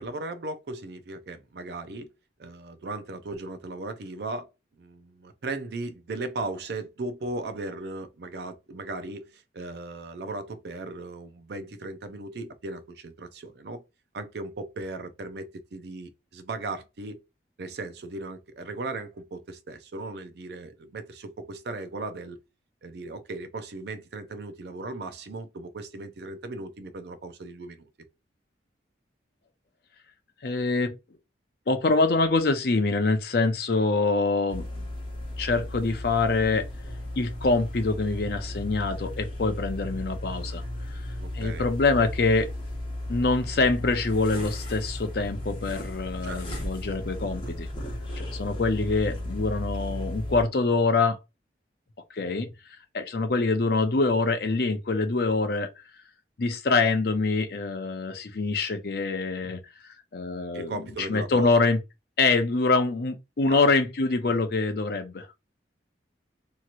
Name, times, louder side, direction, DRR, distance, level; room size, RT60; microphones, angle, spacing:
voice 1, 0.0-2.1 2.4-4.5 4.8-13.8 14.1-17.2 17.6-22.4 22.8-27.9 41.2-41.7 46.2-46.6 60.5-61.5 63.5-63.7, right 2 dB, 60° right, 0.5 m, -37 dB
voice 2, 30.4-31.0 31.7-34.6 35.4-36.6 37.2-40.6 41.3-42.5 43.1-47.7 48.2-51.2 52.1-52.5 52.9-55.7 56.4-59.6 60.1-60.8 61.1-61.8 62.2-65.3, left 3 dB, 55° left, 0.5 m, -25 dB
sound 1, 34.5-50.4, left 1 dB, 25° left, 0.8 m, -35 dB
2.9 x 2.8 x 2.4 m
head